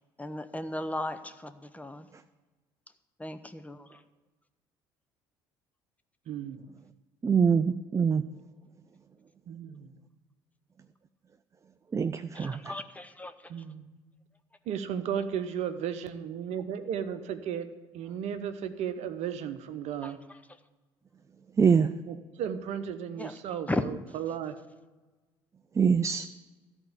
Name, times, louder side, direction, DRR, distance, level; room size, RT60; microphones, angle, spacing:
voice 1, 0.2-2.1 3.2-4.0 12.3-13.3 20.0-20.1 23.2-23.3 23.7-23.8, left 1 dB, 10° left, 10 dB, 0.8 m, -35 dB
voice 2, 6.3-6.6 9.5-9.9 13.5-14.0 14.7-17.7 17.9-20.2 22.1-24.6, right 8 dB, 60° right, 10 dB, 0.8 m, -35 dB
voice 3, 7.2-8.2 11.9-12.7 21.6-21.9 25.8-26.3, right 6 dB, 25° right, 9 dB, 0.4 m, -24 dB
13.5 x 4.5 x 8.5 m, 1.2 s
hypercardioid pair, 60°, 13 cm